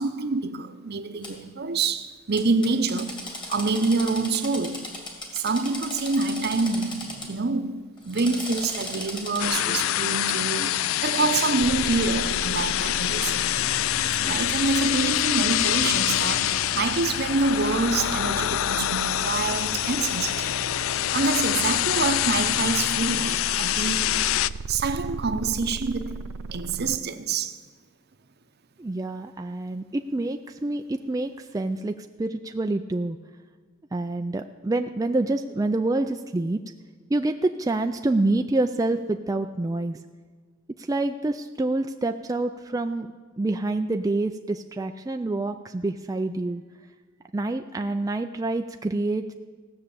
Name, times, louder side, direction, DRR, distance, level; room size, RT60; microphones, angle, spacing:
voice 1, 0.0-3.2 3.5-4.9 5.3-13.7 14.2-20.6 21.1-24.2 24.7-26.2 26.5-27.6, right 3 dB, 50° right, 0.8 m, -26 dB
Drill, 1.2-1.3 2.4-7.3 8.0-9.4, left 2 dB, 25° left, 2.3 m, -37 dB
sound 1, 9.4-24.5, left 13 dB, 80° left, 0.3 m, -25 dB
sound 2, 11.6-27.0, right 4 dB, 85° right, 0.5 m, -38 dB
voice 2, 28.8-33.2 33.9-36.6 37.1-40.0 40.8-43.1 43.4-46.6 47.3-49.3, right 2 dB, 15° right, 0.4 m, -27 dB
16.5 x 6.5 x 8.5 m
head